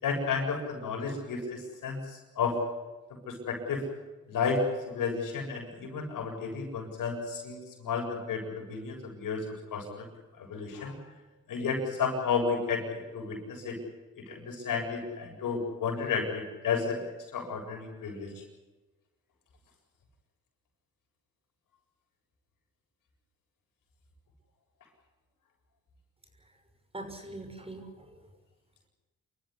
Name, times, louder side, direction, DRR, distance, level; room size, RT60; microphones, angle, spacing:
voice 1, 0.0-2.6 3.3-3.8 4.3-10.0 10.4-11.0 11.5-13.8 14.2-17.0 17.3-18.3, left 5 dB, 75° left, 1 dB, 7.7 m, -32 dB
voice 2, 26.9-28.3, right 2 dB, 15° right, 5 dB, 6.3 m, -43 dB
27.0 x 14.0 x 9.9 m, 1.2 s
cardioid pair, 75°, 33 cm